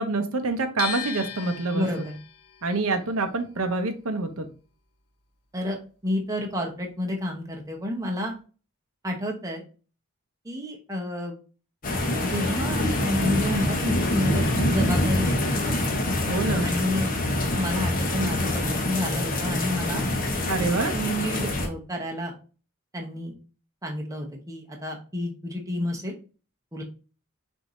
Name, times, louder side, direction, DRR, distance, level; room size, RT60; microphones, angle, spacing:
voice 1, 0.0-1.9 2.6-4.5 16.3-16.7 20.4-20.9, right 3 dB, 70° right, 6 dB, 0.7 m, -26 dB
sound 1, 0.8-6.8 7.1-8.4, left 7 dB, 85° left, 0.8 m, -39 dB
voice 2, 1.7-2.2 5.5-8.3 9.0-9.6 10.4-11.4 12.2-15.3 16.6-17.1 17.6-20.1 20.9-22.3 22.9-23.3 23.8-26.2 26.7-26.8, left 1 dB, 15° right, 0 dB, 0.8 m, -30 dB
sound 2, 11.8-21.7, left 1 dB, 40° left, 0.9 m, -25 dB
6.2 x 2.7 x 3.0 m, 0.36 s
head